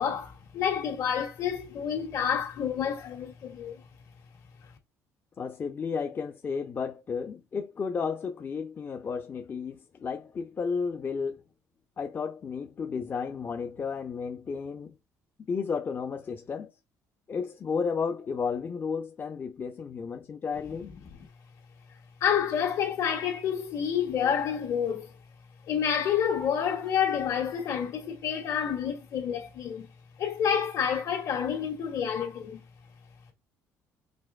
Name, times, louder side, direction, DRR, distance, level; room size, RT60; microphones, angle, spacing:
voice 1, 0.0-3.8 22.2-25.1 25.7-29.9 30.2-32.6, left 8 dB, 65° left, 1.9 m, -29 dB
voice 2, 5.4-11.4 12.0-14.9 15.5-16.7 17.3-20.9, left 5 dB, 35° left, 0.6 m, -33 dB
5.3 x 3.4 x 2.3 m
cardioid pair, 100°, 6 cm